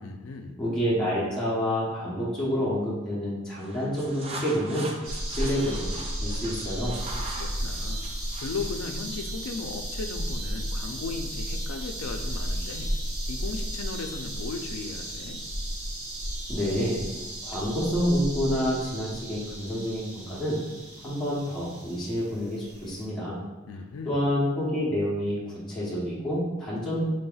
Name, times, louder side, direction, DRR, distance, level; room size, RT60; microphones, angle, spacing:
voice 1, 0.0-0.6 7.4-8.0 8.4-12.9 13.3-15.4 23.7-24.2, left 4 dB, 75° left, 4 dB, 0.4 m, -36 dB
voice 2, 0.6-4.9 5.3-5.9 6.2-7.0 16.5-17.1 17.4-20.6 21.0-23.4 24.1-27.1, equal, 5° left, -9 dB, 0.8 m, -28 dB
sound 1, 3.5-8.8, right 2 dB, 25° right, 0.4 m, -41 dB
sound 2, 5.0-23.1, equal, 80° right, 1.1 m, -34 dB
5.4 x 3.3 x 2.3 m, 1.2 s
head